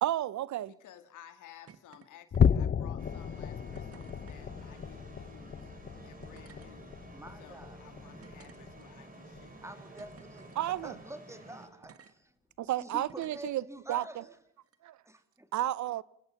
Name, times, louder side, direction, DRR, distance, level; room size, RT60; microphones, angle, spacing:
voice 1, 0.0-0.7 10.6-10.9 12.6-13.6 13.9-14.2 14.8-15.0 15.5-16.0, right 13 dB, 70° right, 0.8 m, -32 dB
voice 2, 0.6-5.7 6.0-7.0 7.4-9.6, left 11 dB, 85° left, 2.4 m, -55 dB
sound 1, 1.7-2.1 2.3-2.8 3.7-4.4 5.5-5.7 6.2-6.7 7.4-7.5 8.2-9.1 10.0-10.6 11.8-12.1 13.1-13.5 14.6-14.8, right 7 dB, 50° right, 1.5 m, -56 dB
sound 2, 2.3-9.0 9.3-9.6 10.0-10.2 10.7-10.9, left 7 dB, 35° left, 0.8 m, -33 dB
sound 3, 3.0-11.7, right 1 dB, 30° right, 5.2 m, -51 dB
voice 3, 7.1-7.8 9.6-12.4 12.8-14.4 15.0-15.5, right 1 dB, 10° right, 2.4 m, -47 dB
29.5 x 17.5 x 5.8 m
cardioid pair, 90°, 30 cm